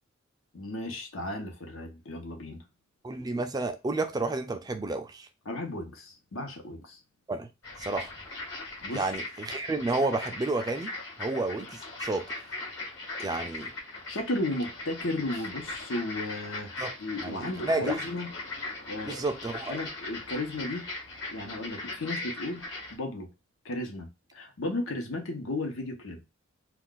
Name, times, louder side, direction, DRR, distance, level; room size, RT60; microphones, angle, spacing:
voice 1, 0.5-2.6 5.4-7.0 8.8-9.1 14.1-16.7 17.0-18.3 18.9-19.2 19.7-20.8 21.3-22.6 22.9-23.3 23.6-26.2, left 2 dB, 75° left, 0.9 m, -34 dB
voice 2, 3.0-5.3 7.3-7.5 7.8-8.1 8.9-10.9 11.2-12.3 13.2-13.7 16.8-16.9 17.2-18.1 19.0-19.8, right 2 dB, 20° right, 0.3 m, -31 dB
sound 1, 7.6-22.9, left 2 dB, 60° left, 1.2 m, -39 dB
2.4 x 2.4 x 3.7 m
head